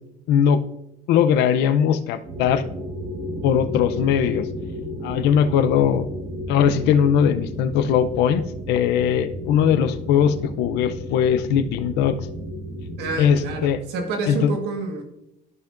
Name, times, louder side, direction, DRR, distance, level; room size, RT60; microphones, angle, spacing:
voice 1, 0.3-0.6 1.1-2.6 3.4-4.5 5.0-6.1 6.5-12.2 13.2-13.8 14.3-14.5, left 8 dB, 90° left, 11 dB, 0.6 m, -20 dB
sound 1, 2.2-13.7, equal, 65° right, 1.4 m, -33 dB
voice 2, 13.0-15.0, right 3 dB, 90° right, 4 dB, 1.5 m, -28 dB
13.0 x 5.8 x 2.5 m, 0.82 s
cardioid pair, 110°, 17 cm